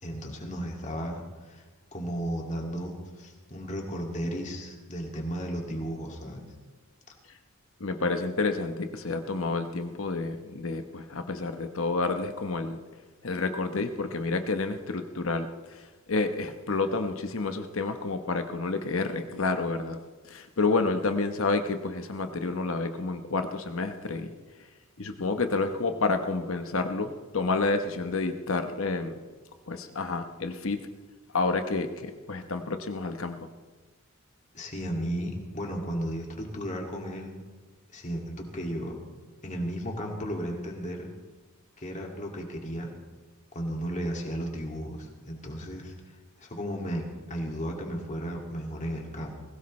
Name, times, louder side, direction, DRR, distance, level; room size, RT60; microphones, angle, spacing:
voice 1, 0.0-1.7 1.9-6.4 34.5-37.4 37.9-39.0 39.4-41.1 41.8-42.9 43.5-46.0 46.4-49.4, equal, 35° left, 0 dB, 2.3 m, -34 dB
voice 2, 7.8-12.8 13.2-15.5 16.1-20.0 20.3-24.3 25.0-29.1 29.7-30.8 31.3-33.4, left 3 dB, 65° left, 7 dB, 1.0 m, -29 dB
20.5 x 17.0 x 3.2 m, 1.3 s
head